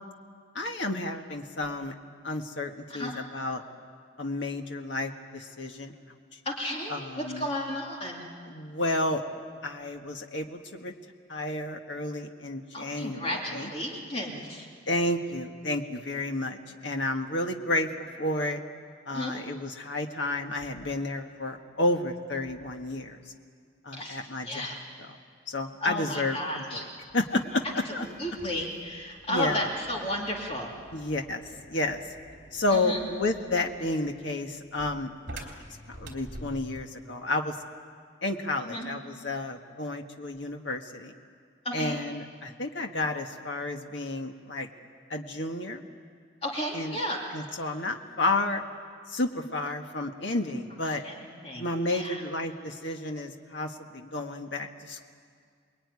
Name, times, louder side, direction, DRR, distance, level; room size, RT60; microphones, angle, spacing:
voice 1, 0.5-1.9 2.2-3.6 4.2-5.9 6.9-7.5 8.5-9.2 9.6-10.9 11.3-13.7 14.9-18.6 19.1-23.2 23.8-24.7 25.5-26.8 27.1-28.1 29.3-29.6 30.9-31.4 31.7-32.0 32.5-37.5 38.2-41.1 41.7-44.7 45.1-45.8 46.7-47.0 47.3-48.6 49.1-51.0 51.6-55.0, left 2 dB, 65° left, 4 dB, 1.7 m, -31 dB
voice 2, 2.9-3.2 6.4-8.2 12.7-14.7 19.1-19.4 23.9-24.8 25.8-26.8 27.9-30.7 32.7-33.0 38.6-38.9 41.6-42.0 46.4-47.2 51.0-52.2, left 1 dB, 30° left, -1 dB, 2.8 m, -33 dB
sound 1, 27.1-37.0, right 1 dB, 60° right, 3.7 m, -48 dB
28.5 x 21.5 x 9.7 m, 2.1 s
head